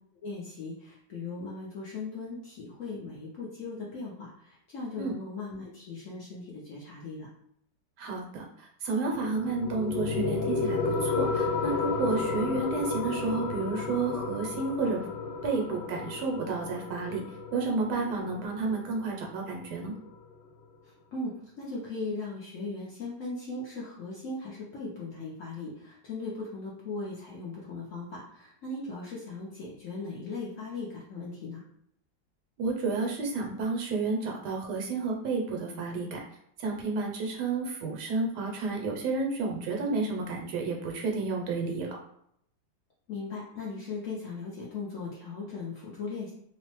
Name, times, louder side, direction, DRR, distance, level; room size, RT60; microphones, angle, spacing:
voice 1, 0.2-7.3 21.1-31.6 43.1-46.3, left 3 dB, 65° left, -5 dB, 0.8 m, -38 dB
voice 2, 8.0-15.0 15.4-17.2 17.5-19.9 32.6-36.2 36.6-42.0, right 3 dB, 75° right, 1 dB, 1.1 m, -31 dB
sound 1, 9.1-20.1, left 4 dB, 85° left, 1.3 m, -32 dB
3.0 x 2.0 x 3.0 m, 0.71 s
omnidirectional pair, 1.9 m